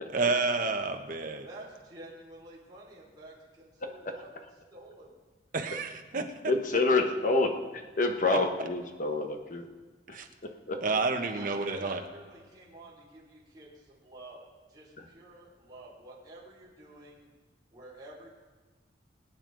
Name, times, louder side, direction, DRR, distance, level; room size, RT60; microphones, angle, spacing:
voice 1, 0.1-1.5 5.5-6.5 10.1-10.3 10.8-12.0, right 3 dB, 50° right, 5 dB, 1.1 m, -30 dB
voice 2, 1.4-5.1 11.1-14.4 14.7-17.3 17.7-18.3, right 1 dB, 25° right, -7 dB, 3.3 m, -49 dB
voice 3, 6.5-9.7 10.7-10.8, left 3 dB, 50° left, 5 dB, 1.2 m, -27 dB
23.0 x 9.2 x 3.9 m, 1.3 s
head